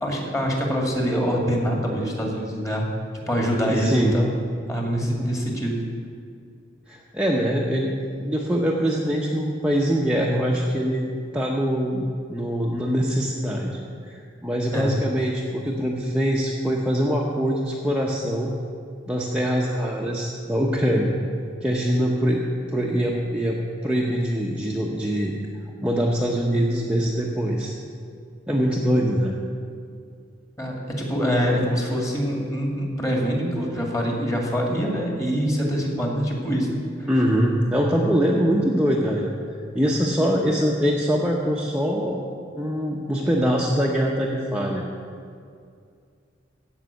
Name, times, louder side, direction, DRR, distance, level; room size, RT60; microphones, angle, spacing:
voice 1, 0.0-2.9 3.3-4.3 4.7-5.8 14.7-15.0 30.6-37.1, equal, 15° left, 0 dB, 2.2 m, -24 dB
voice 2, 3.7-4.2 6.9-7.9 8.2-11.0 11.3-18.5 19.1-21.1 21.6-25.3 25.8-27.7 28.5-29.4 37.1-39.3 39.7-42.2 42.5-44.8, equal, 5° right, -3 dB, 0.9 m, -23 dB
15.5 x 5.5 x 8.3 m, 2.3 s
head